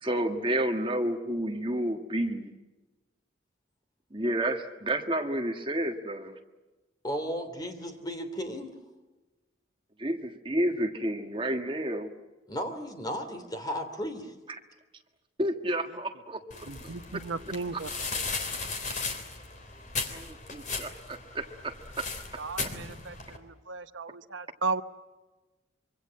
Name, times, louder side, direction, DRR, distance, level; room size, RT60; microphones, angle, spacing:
voice 1, 0.0-2.5 4.1-6.4 10.0-12.1 15.4-16.7 17.1-17.2 18.9-19.0 20.1-22.1, right 1 dB, 25° right, 5 dB, 1.6 m, -30 dB
voice 2, 7.0-8.7 12.5-14.3, equal, 20° left, 6 dB, 2.9 m, -35 dB
sound 1, 16.5-23.4, left 4 dB, 40° left, 3.2 m, -37 dB
voice 3, 16.7-17.9 18.2-18.3 22.4-24.8, right 4 dB, 80° right, 10 dB, 1.0 m, -35 dB
26.0 x 24.5 x 7.7 m, 1.2 s
head